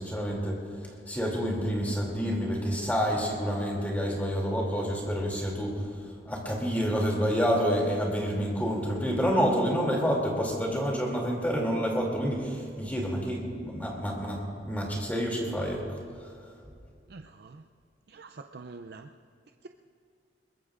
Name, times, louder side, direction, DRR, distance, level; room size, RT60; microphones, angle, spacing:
voice 1, 0.0-5.8 6.2-15.8 16.2-16.3, equal, 10° left, -2 dB, 2.7 m, -28 dB
voice 2, 17.1-17.7 18.1-19.1 19.6-19.7, right 3 dB, 60° right, 6 dB, 0.5 m, -45 dB
22.5 x 20.5 x 2.5 m, 2.5 s
head